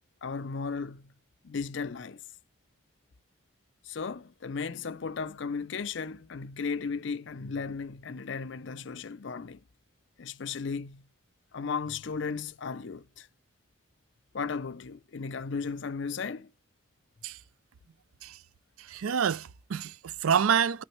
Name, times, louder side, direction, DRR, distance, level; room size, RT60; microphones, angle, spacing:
voice 1, 0.2-1.1 1.4-2.2 3.8-9.6 10.2-11.1 11.5-13.3 14.3-16.5, left 5 dB, 60° left, 0.5 m, -35 dB
voice 2, 18.8-20.8, right 7 dB, 85° right, 0.4 m, -27 dB
12.5 x 6.1 x 3.2 m
head